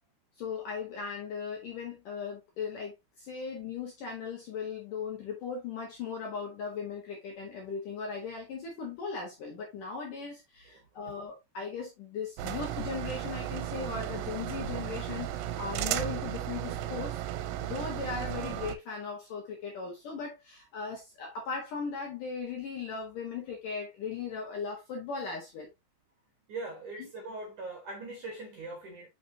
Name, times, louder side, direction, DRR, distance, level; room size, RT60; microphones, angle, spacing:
voice 1, 0.4-17.2 17.6-25.7 26.9-27.1, left 5 dB, 65° left, 2.2 m, -38 dB
voice 2, 10.7-11.1 26.5-29.1, right 3 dB, 60° right, 2.1 m, -41 dB
sound 1, 12.4-18.8, right 12 dB, 85° right, 3.1 m, -35 dB
6.7 x 6.3 x 2.8 m
omnidirectional pair, 5.6 m